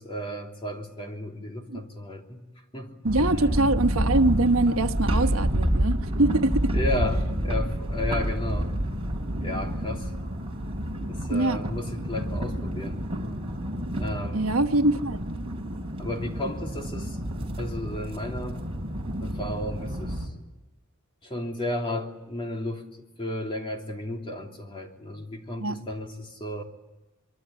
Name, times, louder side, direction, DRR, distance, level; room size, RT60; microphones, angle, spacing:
voice 1, 0.0-2.4 2.7-2.9 3.2-3.5 6.7-8.7 9.4-10.1 11.1-13.0 13.9-14.6 16.0-17.2 17.6-18.6 19.2-20.3 21.2-22.8 23.2-26.6, left 1 dB, 25° left, 3.1 m, -33 dB
sound 1, 3.0-20.3, right 1 dB, 25° right, 3.8 m, -29 dB
voice 2, 3.0-6.7 11.3-11.6 14.3-15.2 25.6-25.8, right 2 dB, 80° right, 1.3 m, -23 dB
25.0 x 23.0 x 9.9 m
head